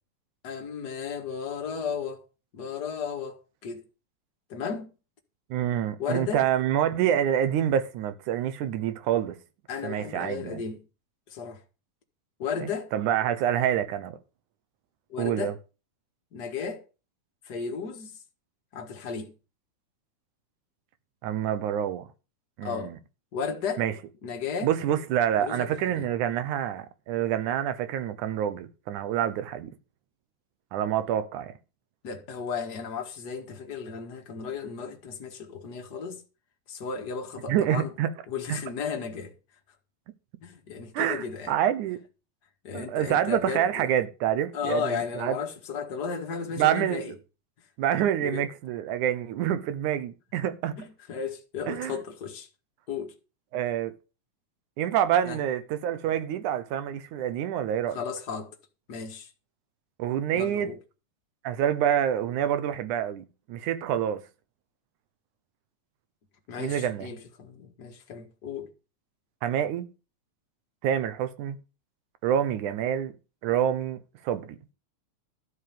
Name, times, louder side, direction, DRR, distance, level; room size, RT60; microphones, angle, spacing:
voice 1, 0.4-2.2 2.5-3.8 4.5-4.9 6.0-6.4 9.7-10.9 11.3-11.6 12.4-12.9 15.1-15.6 16.3-16.8 17.5-18.2 18.7-19.3 22.6-22.9 23.3-23.8 24.2-24.7 25.4-26.1 32.0-36.2 36.7-37.9 38.3-39.3 40.4-41.5 42.6-43.9 44.5-47.1 48.2-48.5 50.8-52.5 52.9-53.1 55.3-55.4 57.9-58.5 58.9-59.3 60.3-60.8 66.5-68.7, left 6 dB, 40° left, 1.8 m, -34 dB
voice 2, 5.5-9.4 9.8-10.6 12.6-14.2 15.2-15.5 21.2-22.1 22.6-23.0 23.8-23.9 24.6-29.7 30.7-31.5 37.5-38.1 38.5-38.6 40.9-42.0 42.7-45.4 46.6-47.0 47.8-50.8 51.7-52.0 53.5-53.9 54.8-58.0 60.0-60.7 61.4-64.2 66.6-67.1 69.4-69.9 70.8-71.6 72.2-73.1 73.4-74.0 74.2-74.6, right 10 dB, 80° right, 2.5 m, -27 dB
12.5 x 4.9 x 8.6 m
omnidirectional pair, 3.5 m